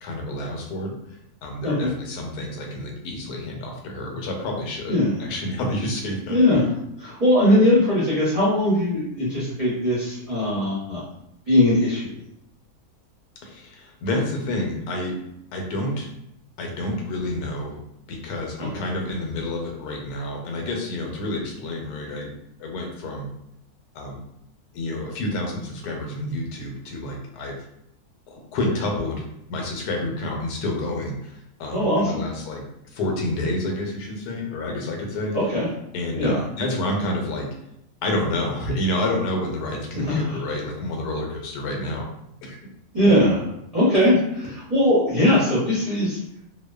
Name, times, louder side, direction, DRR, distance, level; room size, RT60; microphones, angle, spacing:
voice 1, 0.0-4.9 5.2-6.4 13.4-15.2 15.5-16.1 16.6-17.8 18.1-22.3 22.6-23.3 23.9-24.2 24.7-27.6 28.3-32.6 32.9-35.4 35.9-37.5 38.0-42.1 42.4-42.6, left 1 dB, 85° left, 1 dB, 1.2 m, -29 dB
voice 2, 4.9-5.2 6.3-6.6 7.0-11.0 11.5-12.1 31.7-32.2 35.3-35.7 36.2-36.4 39.9-40.4 42.9-43.4 43.7-46.2, left 1 dB, 30° right, -11 dB, 0.7 m, -20 dB
2.7 x 2.0 x 2.2 m, 0.79 s
omnidirectional pair, 1.6 m